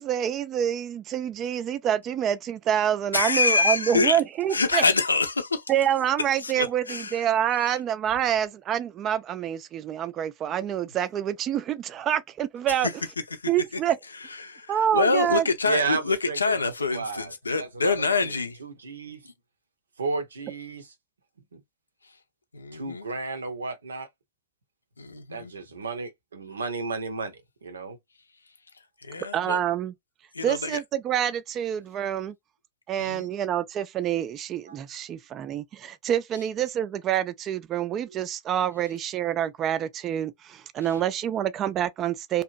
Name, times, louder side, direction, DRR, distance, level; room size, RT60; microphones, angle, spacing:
voice 1, 0.0-4.8 5.7-12.9 13.5-14.0 14.7-15.5 29.3-29.9 30.4-32.3 32.9-42.4, right 10 dB, 30° right, 0.4 m, -27 dB
voice 2, 3.1-4.2 4.5-5.7 6.4-7.3 7.6-7.8 13.3-13.5 14.4-18.6 22.5-23.1 25.0-25.5 29.0-29.6 30.3-30.8 33.0-33.3 40.8-40.9, left 4 dB, 80° left, 0.5 m, -26 dB
voice 3, 15.6-16.5 16.8-17.3 17.6-18.3 18.6-19.2 20.0-20.8 22.7-24.1 25.3-28.0, right 4 dB, 70° right, 0.6 m, -33 dB
2.8 x 2.4 x 2.5 m
figure-of-eight pair, 90°, 0 cm